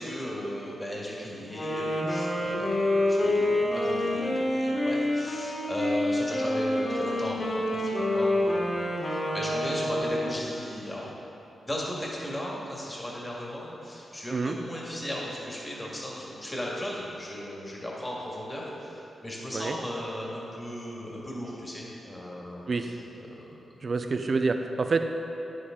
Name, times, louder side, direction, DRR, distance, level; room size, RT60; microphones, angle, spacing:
voice 1, 0.0-11.1 11.7-22.6 23.3-23.5, equal, 15° left, -4 dB, 1.9 m, -36 dB
Wind instrument woodwind instrument, 1.4-10.4, left 1 dB, 35° left, 2.2 m, -27 dB
voice 2, 23.8-25.0, right 4 dB, 45° right, 6 dB, 0.6 m, -27 dB
10.0 x 9.8 x 3.8 m, 2.9 s
wide cardioid pair, 125°, 0 cm